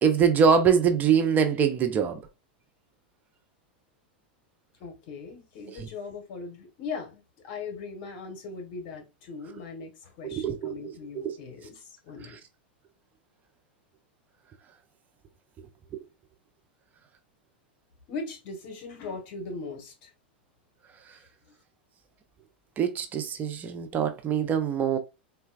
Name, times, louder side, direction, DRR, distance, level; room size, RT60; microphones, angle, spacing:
voice 1, 0.0-2.2 5.7-5.9 10.2-11.4 15.9-16.0 22.8-25.0, right 7 dB, 30° right, 0.6 m, -24 dB
voice 2, 4.8-12.4 18.1-20.1, left 4 dB, 55° left, 1.2 m, -39 dB
3.9 x 2.3 x 2.3 m
hypercardioid pair, 105°, 6 cm